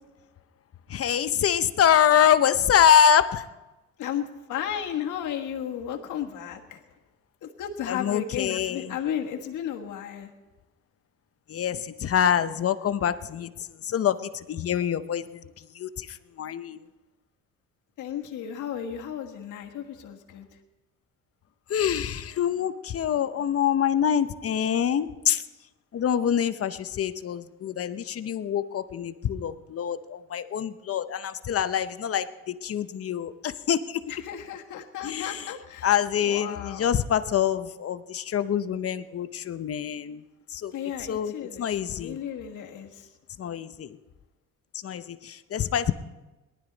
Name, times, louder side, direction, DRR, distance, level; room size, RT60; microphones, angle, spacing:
voice 1, 0.9-3.4 7.9-9.0 11.5-13.5 13.8-16.8 21.7-25.4 25.9-34.0 35.0-35.5 35.8-40.2 40.5-40.7 41.0-42.2 43.4-44.0 44.8-45.9, left 9 dB, 50° left, 13 dB, 0.7 m, -25 dB
voice 2, 4.0-6.8 7.4-10.3 18.0-20.5 34.1-35.9 36.2-36.9 40.7-43.1, left 9 dB, 80° left, 3 dB, 1.6 m, -34 dB
19.0 x 12.0 x 4.0 m, 1.1 s
cardioid pair, 90°, 30 cm